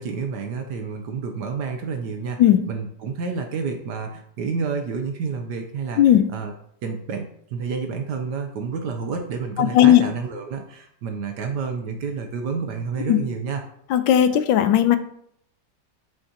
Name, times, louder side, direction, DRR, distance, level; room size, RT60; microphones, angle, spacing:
voice 1, 0.0-2.4 2.7-6.0 6.3-6.5 6.8-13.6, right 5 dB, 70° right, 4 dB, 1.3 m, -29 dB
voice 2, 9.6-10.0 13.1-13.2 13.9-15.0, left 11 dB, 90° left, 10 dB, 1.4 m, -16 dB
8.0 x 7.3 x 2.9 m, 0.69 s
omnidirectional pair, 2.0 m